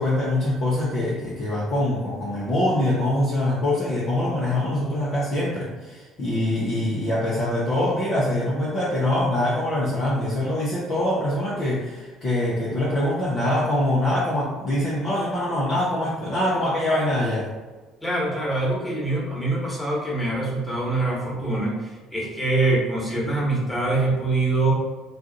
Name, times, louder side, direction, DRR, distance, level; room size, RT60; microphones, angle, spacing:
voice 1, 0.0-17.5, left 1 dB, 40° left, -8 dB, 0.7 m, -24 dB
voice 2, 18.0-24.7, right 2 dB, 10° left, -5 dB, 1.3 m, -24 dB
2.4 x 2.4 x 3.9 m, 1.3 s
figure-of-eight pair, 55°, 0 cm